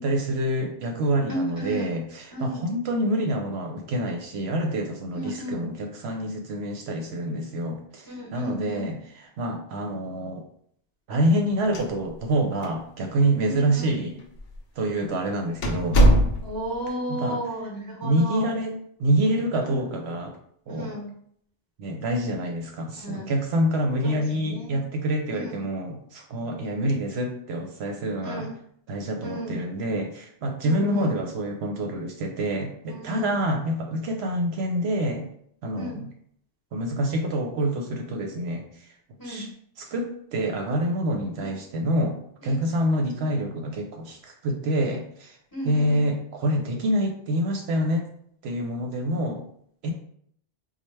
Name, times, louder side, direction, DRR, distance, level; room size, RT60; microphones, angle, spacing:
voice 1, 0.0-10.4 11.1-14.2 14.8-16.0 17.1-17.4 18.0-20.4 20.7-21.0 21.8-28.5 28.9-35.3 35.6-36.1 36.7-38.9 39.2-39.5 39.8-45.4 45.6-48.0 48.4-49.4 49.8-49.9, right 1 dB, 70° right, 2 dB, 0.8 m, -27 dB
voice 2, 1.3-1.9 2.3-2.6 5.1-5.7 8.1-8.9 13.5-13.9 16.4-18.5 19.7-19.8 20.7-21.1 23.0-23.3 24.0-24.7 25.3-25.6 28.2-28.5 29.2-29.5 30.6-31.1 32.9-33.3 35.7-36.0 39.2-39.4 41.4-41.5 42.4-42.6 45.5-46.0, equal, 20° left, -3 dB, 0.8 m, -34 dB
sound 1, 11.6-12.4 12.6-12.7 13.5-13.6 14.4-14.6 15.0-15.1 15.6-16.7, right 1 dB, 60° left, 0.8 m, -20 dB
4.3 x 2.2 x 3.1 m, 0.66 s
omnidirectional pair, 1.2 m